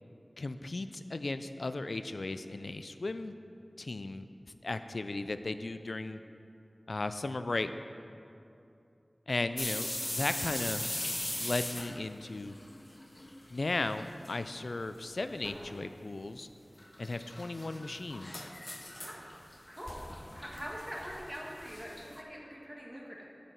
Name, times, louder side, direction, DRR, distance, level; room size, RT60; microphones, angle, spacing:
voice 1, 0.4-3.3 3.8-4.3 4.6-6.2 6.9-7.7 9.3-10.8 11.4-12.5 13.5-16.5 17.0-18.4, left 2 dB, 75° left, 10 dB, 0.3 m, -36 dB
sound 1, 9.6-13.4 13.6-14.3 14.7-14.8 15.4-15.8 16.8-22.2, left 1 dB, 35° left, 0.7 m, -40 dB
voice 2, 19.7-23.3, equal, 15° right, -3 dB, 1.6 m, -44 dB
8.2 x 7.1 x 4.5 m, 2.7 s
wide cardioid pair, 45°, 0 cm